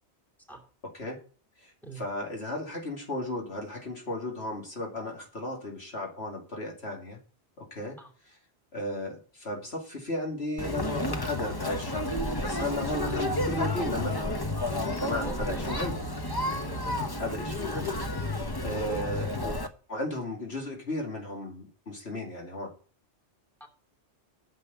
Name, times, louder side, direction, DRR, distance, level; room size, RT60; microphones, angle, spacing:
voice 1, 1.6-7.2 7.6-8.0 8.2-8.4 8.7-14.4 15.0-16.0 17.2-17.9 18.3-19.5 19.9-22.7, left 1 dB, 65° left, 0 dB, 3.0 m, -35 dB
Conversation, 10.6-19.7, left 1 dB, 20° left, 1.0 m, -31 dB
voice 2, 12.8-13.5 15.2-15.6 16.6-17.0 18.7-19.1 23.6-23.7, right 3 dB, ahead, 1 dB, 2.8 m, -43 dB
9.7 x 7.4 x 6.9 m, 0.39 s
omnidirectional pair, 1.1 m